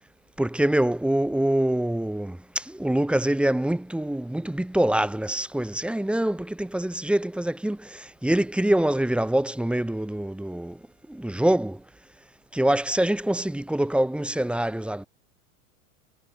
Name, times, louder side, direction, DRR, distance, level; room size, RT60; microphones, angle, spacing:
voice 1, 0.4-10.8 11.1-11.8 12.5-15.0, right 1 dB, ahead, 1.3 m, -25 dB
figure-of-eight pair, 90°, 44 cm